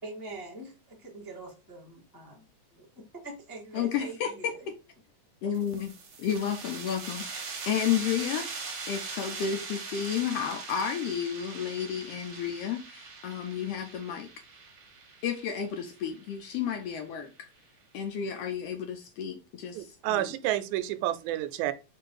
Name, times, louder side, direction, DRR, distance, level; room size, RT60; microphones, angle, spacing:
voice 1, 0.0-0.7 1.0-2.4 2.7-4.6, right 2 dB, 10° left, 0.9 m, -44 dB
voice 2, 3.7-4.5 5.4-5.9 6.2-8.5 8.9-14.3 15.2-17.5 17.9-20.3, left 8 dB, 85° left, 1.4 m, -32 dB
sound 1, 5.5-16.9, right 4 dB, 60° right, 1.8 m, -41 dB
voice 3, 19.8-21.7, right 14 dB, 90° right, 2.0 m, -30 dB
4.5 x 2.5 x 4.6 m
omnidirectional pair, 3.4 m